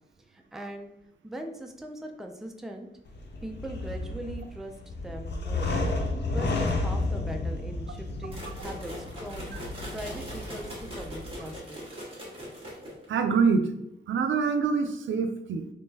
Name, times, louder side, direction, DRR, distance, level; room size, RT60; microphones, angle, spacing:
voice 1, 0.3-0.9 1.2-2.9 3.4-5.7 6.3-9.5 9.9-11.8, right 1 dB, ahead, 3 dB, 0.4 m, -40 dB
sound 1, 3.1-11.6, left 2 dB, 65° left, 0.6 m, -32 dB
sound 2, 8.3-13.2, equal, 30° right, 1.4 m, -41 dB
voice 2, 13.1-13.8 14.1-15.7, right 5 dB, 85° right, 7 dB, 0.4 m, -25 dB
3.6 x 3.3 x 2.7 m, 0.82 s
wide cardioid pair, 120°, 19 cm